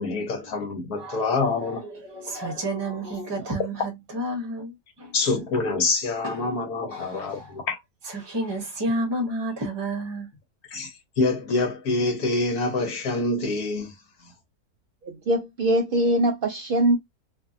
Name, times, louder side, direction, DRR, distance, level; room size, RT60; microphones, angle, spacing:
voice 1, 0.0-1.8 5.1-7.8 10.7-13.9, left 3 dB, 75° left, 1.4 m, -26 dB
voice 2, 1.0-5.1 6.2-6.6 6.9-7.6 8.0-10.3, right 1 dB, 20° right, 0.8 m, -31 dB
voice 3, 15.0-17.0, right 1 dB, 85° right, 0.4 m, -22 dB
2.7 x 2.6 x 2.4 m
omnidirectional pair, 1.6 m